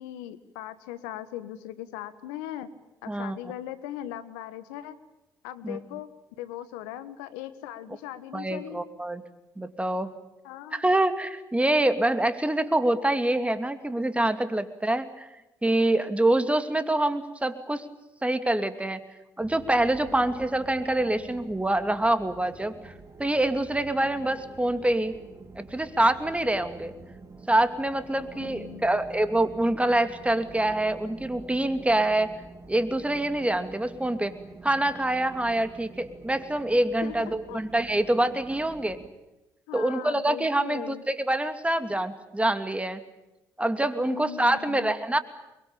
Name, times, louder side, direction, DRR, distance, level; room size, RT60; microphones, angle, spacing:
voice 1, 0.0-2.7 3.0-5.0 5.4-6.1 6.4-8.8 10.4-10.9 20.1-20.2 28.1-29.0 37.0-37.6 39.7-41.0 44.1-44.9, left 12 dB, 85° left, 12 dB, 1.4 m, -39 dB
voice 2, 3.1-3.4 5.6-5.8 8.3-9.2 9.6-10.1 10.7-15.3 15.6-17.8 18.2-19.0 19.4-22.9 23.2-25.1 25.6-26.9 27.5-32.3 32.7-34.3 34.6-39.0 39.7-43.0 43.6-45.2, right 1 dB, 10° right, 10 dB, 2.7 m, -25 dB
sound 1, 19.4-39.1, right 3 dB, 30° right, 3.4 m, -47 dB
24.0 x 22.0 x 9.0 m, 0.98 s
hypercardioid pair, 50°, 10 cm